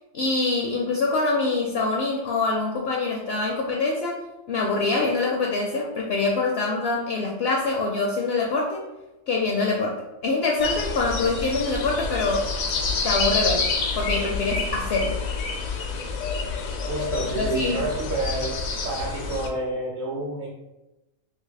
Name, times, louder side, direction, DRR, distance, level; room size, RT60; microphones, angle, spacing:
voice 1, 0.1-4.2 4.5-8.9 9.3-12.5 13.0-15.2 17.4-17.8, left 3 dB, 65° left, -1 dB, 0.7 m, -25 dB
sound 1, 10.6-19.5, left 4 dB, 85° left, 1.1 m, -28 dB
voice 2, 16.9-18.5 18.8-20.5, right 2 dB, 60° right, -3 dB, 1.0 m, -29 dB
2.8 x 2.7 x 3.9 m, 1.0 s
omnidirectional pair, 1.4 m